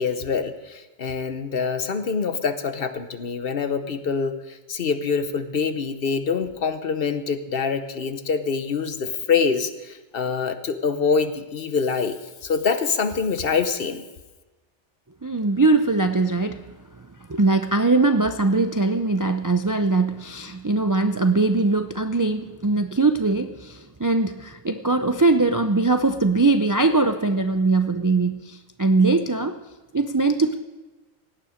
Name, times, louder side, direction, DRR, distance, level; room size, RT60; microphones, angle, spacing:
voice 1, 0.0-12.2 12.4-14.0, left 5 dB, 55° left, 10 dB, 1.0 m, -25 dB
voice 2, 15.2-16.6 17.3-29.6 29.9-30.6, right 3 dB, 30° right, 7 dB, 0.4 m, -21 dB
17.5 x 9.8 x 5.0 m, 1.2 s
omnidirectional pair, 1.2 m